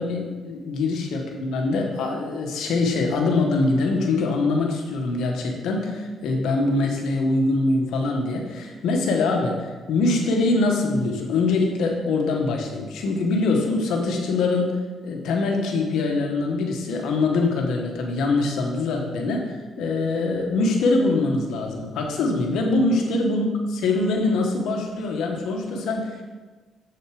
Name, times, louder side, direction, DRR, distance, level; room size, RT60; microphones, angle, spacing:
voice 1, 0.0-14.8 15.0-23.5 23.8-26.2, left 3 dB, 85° left, 1 dB, 1.3 m, -23 dB
7.9 x 6.5 x 4.9 m, 1.3 s
cardioid pair, 90°, 0 cm